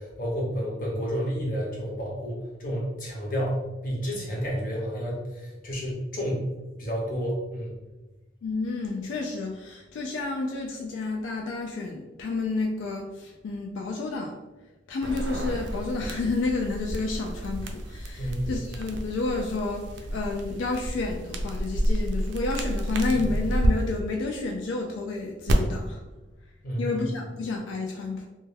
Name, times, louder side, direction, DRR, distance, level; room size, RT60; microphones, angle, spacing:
voice 1, 0.0-3.6 3.8-6.5 6.8-7.7 18.2-18.5 26.6-27.1, equal, 45° left, -3 dB, 0.7 m, -30 dB
voice 2, 8.4-14.4 14.9-26.0 26.8-28.3, left 3 dB, 85° left, 1 dB, 0.3 m, -30 dB
sound 1, 15.0-23.7 25.5-25.6, right 1 dB, 65° right, 0.3 m, -30 dB
2.2 x 2.2 x 3.1 m, 1.1 s
head